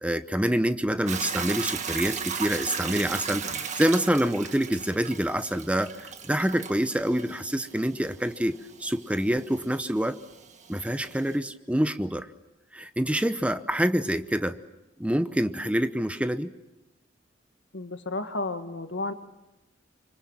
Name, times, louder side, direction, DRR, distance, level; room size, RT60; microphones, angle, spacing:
voice 1, 0.0-10.2 10.7-12.3 12.7-14.6 15.0-16.5, equal, 5° right, 11 dB, 0.9 m, -26 dB
Hiss / Toilet flush / Trickle dribble, 1.1-11.4, right 6 dB, 40° right, 1.8 m, -36 dB
voice 2, 17.7-19.1, left 2 dB, 85° left, 8 dB, 1.9 m, -32 dB
26.0 x 25.0 x 7.4 m, 1.0 s
head